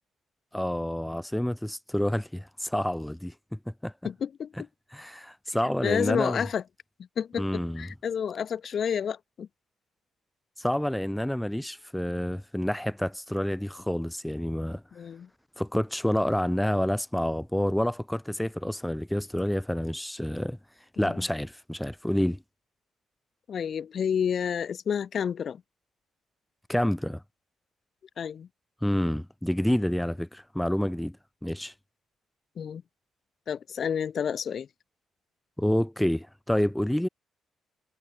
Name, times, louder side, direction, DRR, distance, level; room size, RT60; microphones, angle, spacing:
voice 1, 0.5-3.9 4.9-6.5 7.4-7.9 10.6-14.8 15.6-20.6 21.0-22.4 26.7-27.2 28.8-31.2 31.4-31.7 35.6-37.1, left 1 dB, 5° left, 0.8 m, -28 dB
voice 2, 4.0-4.5 5.8-6.6 7.2-9.5 14.9-15.3 21.0-21.1 23.5-25.6 28.2-28.5 32.6-32.8 33.5-34.7, left 7 dB, 55° left, 1.1 m, -30 dB
cardioid pair, 90°, 0 cm